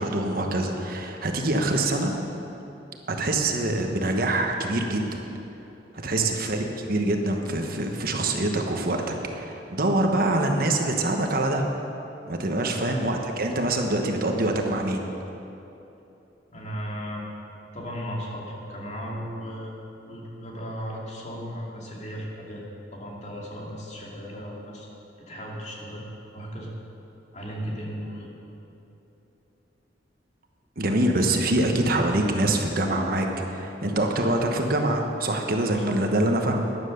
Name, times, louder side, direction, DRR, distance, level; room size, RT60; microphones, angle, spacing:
voice 1, 0.0-2.2 3.1-5.2 6.0-11.6 12.3-15.0 30.8-36.6, right 1 dB, 55° right, 3 dB, 1.2 m, -25 dB
voice 2, 5.9-6.3 12.6-12.9 16.5-17.3 17.7-22.6 22.9-24.9 25.2-26.1 26.3-26.7 27.3-28.3 35.7-36.0, equal, 40° left, -3 dB, 2.4 m, -36 dB
12.0 x 9.9 x 6.6 m, 3.0 s
head